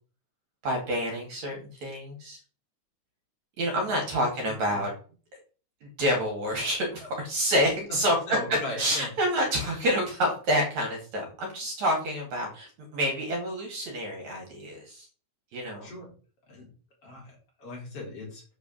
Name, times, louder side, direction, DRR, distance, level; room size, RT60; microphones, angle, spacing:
voice 1, 0.6-2.4 3.6-4.9 5.3-5.4 5.8-8.2 8.8-15.1 15.5-15.9, equal, 65° right, 1 dB, 3.6 m, -28 dB
voice 2, 4.4-4.9 7.8-8.0 8.3-9.1 15.8-16.1 16.5-16.7 17.0-18.4, left 1 dB, 50° left, -2 dB, 4.6 m, -39 dB
8.1 x 5.0 x 6.2 m, 0.39 s
omnidirectional pair, 3.5 m